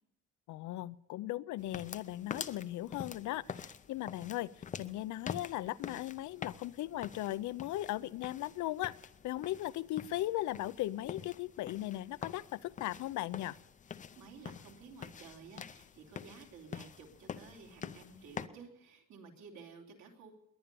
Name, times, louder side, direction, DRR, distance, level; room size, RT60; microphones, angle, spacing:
voice 1, 0.5-4.5 4.8-8.9 9.2-13.6, left 15 dB, 75° left, 17 dB, 0.6 m, -37 dB
sound 1, 1.6-18.5, left 7 dB, 25° left, 0.5 m, -47 dB
voice 2, 14.1-20.3, right 5 dB, 65° right, 1 dB, 3.2 m, -53 dB
20.5 x 10.0 x 6.9 m, 0.82 s
cardioid pair, 175°, 30 cm